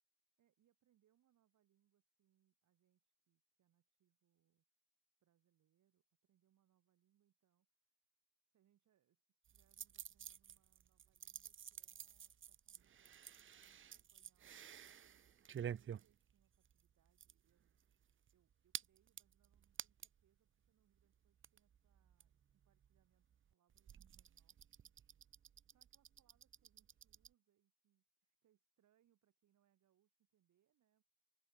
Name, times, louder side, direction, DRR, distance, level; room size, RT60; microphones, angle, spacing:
voice 1, 0.4-4.6 5.2-8.0 8.4-15.3 15.7-17.8 18.3-24.6 25.6-31.0, right 11 dB, 70° right, 7.2 m, -82 dB
sound 1, 9.4-20.3 20.6-20.7 20.9-27.3, right 9 dB, 40° right, 0.8 m, -53 dB
cardioid pair, 90°, 30 cm